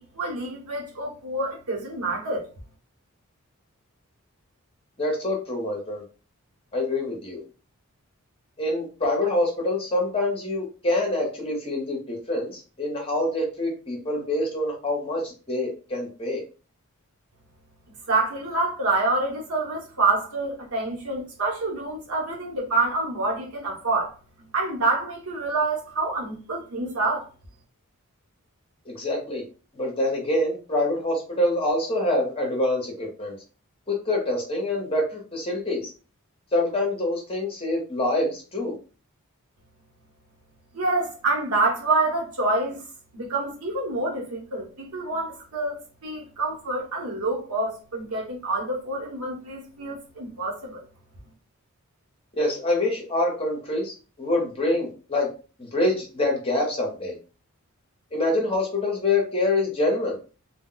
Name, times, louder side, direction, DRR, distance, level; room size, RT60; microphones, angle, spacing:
voice 1, 0.1-2.4 18.1-24.1 24.5-27.3 40.7-42.8 43.1-50.8, right 2 dB, 80° right, 1.0 m, -27 dB
voice 2, 5.0-6.0 6.7-7.4 8.6-16.4 28.9-29.4 29.7-33.3 33.9-35.9 36.5-38.7 52.4-55.3 55.6-57.2 58.1-60.2, left 1 dB, 25° left, 0.9 m, -26 dB
2.3 x 2.2 x 3.8 m
head